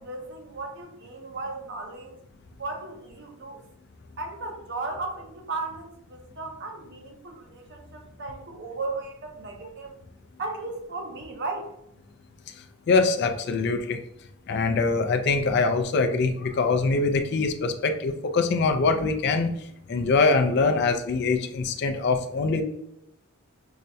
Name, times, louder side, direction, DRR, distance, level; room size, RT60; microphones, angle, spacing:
voice 1, 0.0-2.1 2.6-3.6 4.2-9.9 10.4-11.7, right 3 dB, 50° right, 3 dB, 0.7 m, -35 dB
voice 2, 12.9-14.0 14.5-19.5 19.9-22.6, left 4 dB, 50° left, 6 dB, 0.3 m, -23 dB
5.5 x 2.2 x 2.6 m, 0.79 s
head